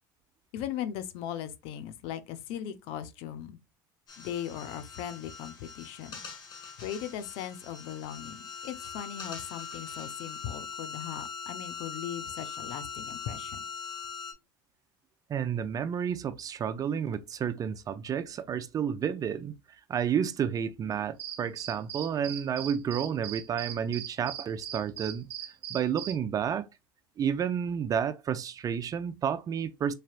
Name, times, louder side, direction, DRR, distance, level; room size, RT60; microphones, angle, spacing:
voice 1, 0.5-3.6 4.2-6.2 6.8-13.6, left 10 dB, 65° left, 0.6 m, -38 dB
sound 1, 4.1-14.3, left 5 dB, 40° left, 1.4 m, -42 dB
voice 2, 15.3-19.5 19.9-25.3 25.7-26.7 27.2-29.9, right 8 dB, 35° right, 0.5 m, -31 dB
sound 2, 21.2-26.1, right 10 dB, 60° right, 0.8 m, -39 dB
4.1 x 3.3 x 2.4 m
supercardioid pair, 95°, 10 cm